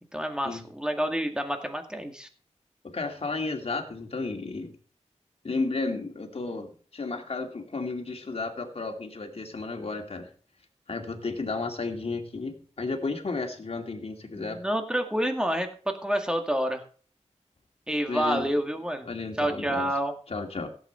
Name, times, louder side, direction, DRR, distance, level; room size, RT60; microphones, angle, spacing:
voice 1, 0.1-2.3 14.4-16.8 17.9-19.1 19.4-20.1, equal, 5° right, 5 dB, 2.1 m, -28 dB
voice 2, 2.8-4.7 5.4-10.3 10.9-14.6 18.1-18.5 19.1-19.9 20.3-20.7, left 3 dB, 55° left, 3 dB, 2.5 m, -33 dB
16.0 x 8.3 x 4.5 m, 0.42 s
wide cardioid pair, 90°, 12 cm